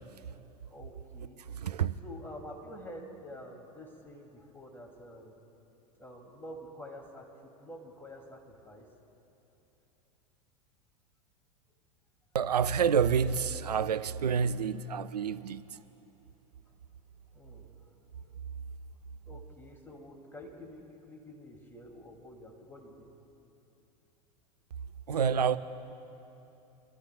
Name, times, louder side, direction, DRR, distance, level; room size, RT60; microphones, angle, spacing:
voice 1, 0.7-1.4 2.0-5.4 6.0-8.9 15.8-15.9 17.3-18.1 19.3-23.1, equal, 10° left, 2.6 m, -48 dB
voice 2, 1.5-2.0 12.3-15.6 25.1-25.6, right 7 dB, 85° right, 0.5 m, -28 dB
29.5 x 13.0 x 2.3 m
hypercardioid pair, 90°, 20 cm